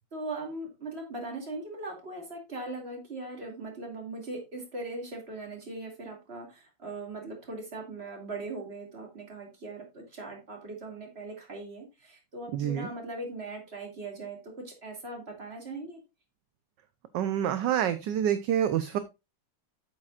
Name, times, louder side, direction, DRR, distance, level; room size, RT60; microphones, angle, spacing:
voice 1, 0.1-16.0, right 2 dB, 35° right, 2 dB, 2.6 m, -40 dB
voice 2, 12.5-12.9 17.1-19.0, right 10 dB, 70° right, 12 dB, 1.3 m, -27 dB
8.7 x 8.4 x 2.4 m, 0.25 s
omnidirectional pair, 2.1 m